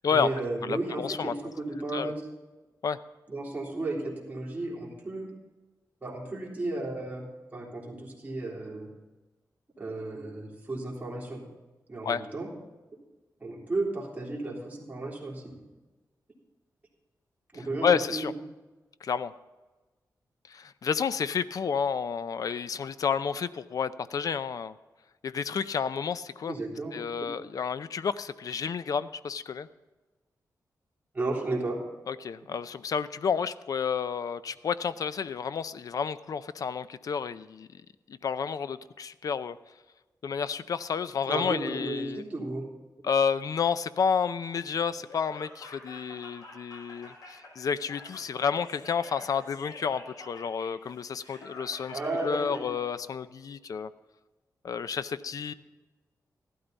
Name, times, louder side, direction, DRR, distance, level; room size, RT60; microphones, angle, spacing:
voice 1, 0.1-2.2 3.3-5.3 6.0-7.3 7.5-8.9 9.8-11.4 11.9-12.5 13.4-15.5 17.5-18.3 26.4-27.0 31.1-31.8 41.3-42.7 51.9-52.7, right 2 dB, 25° right, -4 dB, 3.6 m, -34 dB
voice 2, 0.6-1.3 1.9-2.1 2.8-3.0 12.0-12.2 17.8-18.3 19.0-19.3 20.5-24.7 25.2-26.6 26.9-29.7 32.1-37.7 38.1-39.6 40.2-42.2 43.0-53.9 54.6-55.5, left 6 dB, 60° left, 14 dB, 0.5 m, -30 dB
Laughter, 44.9-52.6, left 2 dB, 75° left, 5.2 m, -48 dB
15.0 x 12.5 x 4.0 m, 1.2 s
wide cardioid pair, 135°, 7 cm